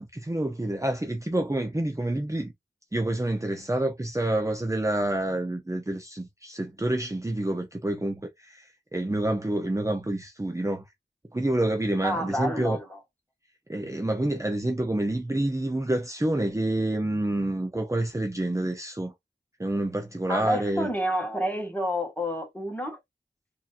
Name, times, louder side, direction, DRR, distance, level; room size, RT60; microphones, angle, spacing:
voice 1, 0.0-2.5 2.9-10.8 11.3-12.8 13.7-19.1 19.6-20.9, right 1 dB, 15° right, 0.8 m, -28 dB
voice 2, 12.0-13.0 20.3-23.0, equal, 10° left, 1.8 m, -29 dB
3.9 x 2.9 x 2.6 m
wide cardioid pair, 40°, 18 cm